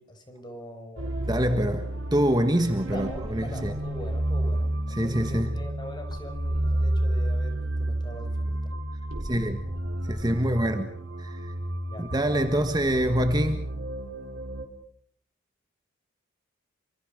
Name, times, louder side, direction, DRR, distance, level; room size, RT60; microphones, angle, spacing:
voice 1, 0.0-1.7 2.9-8.6 11.9-12.1, equal, 20° left, 6 dB, 5.1 m, -43 dB
sound 1, 1.0-14.6, right 1 dB, 75° right, 3.9 m, -31 dB
voice 2, 1.3-1.8 2.1-3.7 4.9-5.5 9.2-9.6 10.0-10.9 11.2-11.5 12.0-13.7, equal, 20° right, 6 dB, 1.6 m, -25 dB
29.5 x 25.5 x 5.2 m, 0.65 s
head